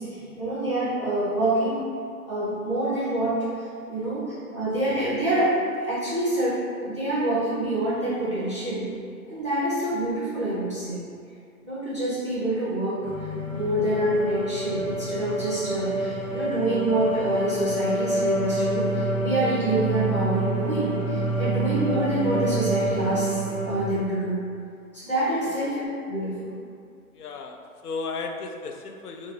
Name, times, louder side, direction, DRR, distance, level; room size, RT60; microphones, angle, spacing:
voice 1, 0.0-1.8 2.2-4.2 4.5-8.9 9.3-11.0 11.6-13.0 13.5-23.4 23.6-24.4 24.9-26.5, right 1 dB, 20° right, -10 dB, 0.5 m, -26 dB
sound 1, 13.0-24.0, right 1 dB, 55° left, 1.3 m, -27 dB
voice 2, 27.2-29.3, left 4 dB, 85° left, 4 dB, 0.6 m, -35 dB
5.8 x 2.2 x 3.0 m, 2.3 s
hypercardioid pair, 180°, 44 cm